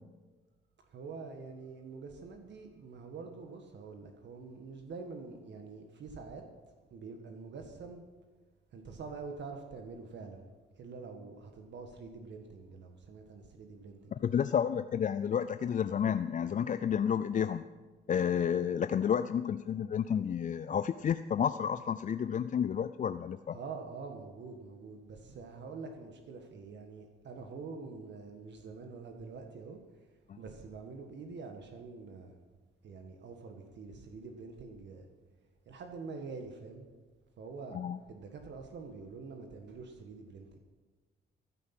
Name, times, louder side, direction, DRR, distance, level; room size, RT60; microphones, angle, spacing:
voice 1, 0.8-8.0 8.7-10.5 10.7-14.5 23.5-32.4 32.8-35.1 35.6-36.9 37.4-37.8 38.1-40.6, right 4 dB, 65° right, 4 dB, 1.6 m, -46 dB
voice 2, 14.2-17.6 18.1-23.6 30.3-30.4 37.7-38.0, left 8 dB, 40° left, 12 dB, 0.4 m, -31 dB
14.5 x 9.5 x 6.0 m, 1.3 s
cardioid pair, 90°, 20 cm